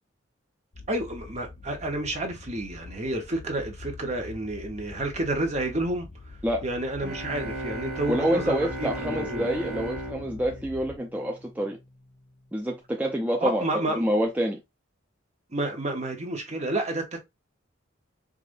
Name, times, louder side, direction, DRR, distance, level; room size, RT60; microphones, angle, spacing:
sound 1, 0.7-11.0, left 3 dB, 60° left, 0.8 m, -45 dB
voice 1, 0.9-6.1 6.6-9.5 13.4-14.1 15.5-17.2, right 1 dB, 35° right, 1.0 m, -30 dB
sound 2, 7.0-11.7, right 1 dB, 55° right, 1.8 m, -36 dB
voice 2, 8.1-11.8 12.5-13.6 13.9-14.6, equal, 10° right, 0.5 m, -27 dB
4.9 x 2.6 x 2.6 m
head